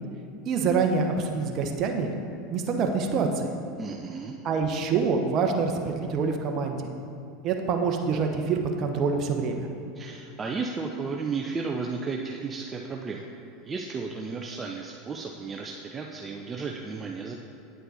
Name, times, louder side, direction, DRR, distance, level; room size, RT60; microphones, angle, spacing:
voice 1, 0.5-2.1 2.5-3.5 4.4-6.9 7.4-9.7, right 5 dB, 45° right, 3 dB, 1.0 m, -26 dB
voice 2, 3.8-4.3 10.0-13.2 13.6-17.3, right 4 dB, 25° right, 1 dB, 0.7 m, -33 dB
9.4 x 7.9 x 4.1 m, 2.5 s
hypercardioid pair, 90°, 0 cm